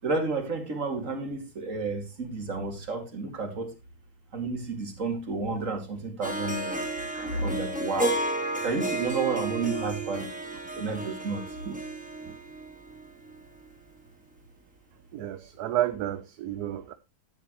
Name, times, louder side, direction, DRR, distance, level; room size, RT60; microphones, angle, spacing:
voice 1, 0.0-3.7 4.3-6.8 7.1-8.2 8.6-10.3 10.7-11.4, right 3 dB, 50° right, 2.7 m, -31 dB
Harp, 6.2-13.4, right 2 dB, 5° right, 2.8 m, -32 dB
voice 2, 15.1-16.9, right 12 dB, 75° right, 1.3 m, -31 dB
12.0 x 10.0 x 3.0 m
omnidirectional pair, 1.7 m